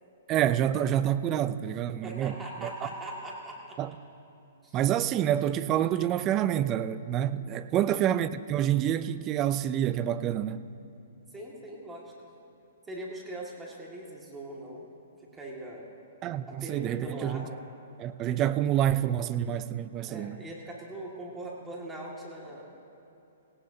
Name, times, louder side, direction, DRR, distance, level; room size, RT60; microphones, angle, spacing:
voice 1, 0.3-2.7 3.8-3.9 4.7-10.6 16.2-17.5 18.0-20.4, right 11 dB, 25° right, 0.5 m, -27 dB
voice 2, 2.0-3.8 4.6-4.8 5.0-5.1 7.7-8.0 11.3-12.1 12.8-14.9 15.3-15.8 16.5-17.6 20.1-22.8, right 1 dB, 10° right, 2.1 m, -41 dB
19.5 x 18.0 x 2.8 m
hypercardioid pair, 140°, 0 cm